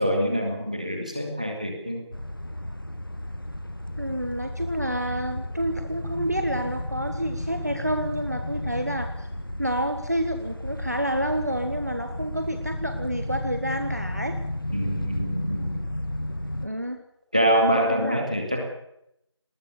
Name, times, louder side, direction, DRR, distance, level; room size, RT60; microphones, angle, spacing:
voice 1, 0.0-2.0 14.7-15.8 17.3-18.6, equal, 15° right, 3 dB, 2.1 m, -25 dB
sound 1, 2.1-16.7, left 1 dB, 50° left, 1.8 m, -33 dB
voice 2, 4.0-9.3 9.6-14.4 16.6-17.0 17.7-18.3, equal, 35° right, 7 dB, 1.4 m, -29 dB
20.0 x 19.0 x 7.0 m, 0.78 s
figure-of-eight pair, 180°, 15 cm